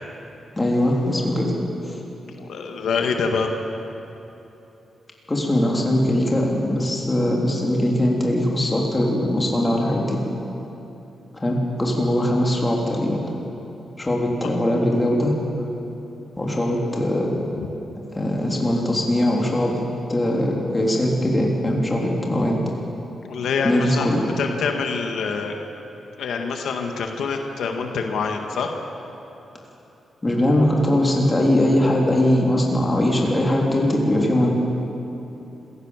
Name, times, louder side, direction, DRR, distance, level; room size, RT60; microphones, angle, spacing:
voice 1, 0.6-1.5 1.8-2.0 5.3-10.2 11.4-13.2 14.0-15.3 16.4-17.3 18.1-19.8 20.1-22.6 23.6-24.3 30.2-34.5, left 1 dB, 15° left, -1 dB, 3.5 m, -21 dB
voice 2, 2.1-3.5 14.4-14.5 17.6-17.7 23.2-25.5 26.2-28.7, left 5 dB, 85° left, 3 dB, 1.8 m, -26 dB
26.5 x 16.0 x 7.4 m, 3.0 s
wide cardioid pair, 135°, 0 cm